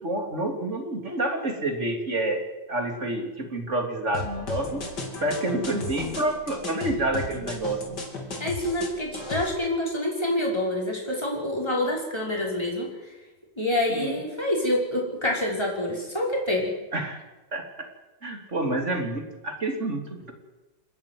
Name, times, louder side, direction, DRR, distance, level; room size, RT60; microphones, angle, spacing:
voice 1, 0.0-2.4 2.7-4.9 5.2-7.8 13.9-14.2 16.9-17.2 17.5-17.6 18.2-20.3, right 1 dB, 35° right, 4 dB, 3.7 m, -28 dB
sound 1, 4.1-9.5, left 2 dB, 60° left, 4.0 m, -35 dB
voice 2, 8.4-12.9 13.6-16.7, left 1 dB, 15° left, -2 dB, 5.8 m, -27 dB
29.5 x 10.5 x 9.6 m, 1.1 s
omnidirectional pair, 2.1 m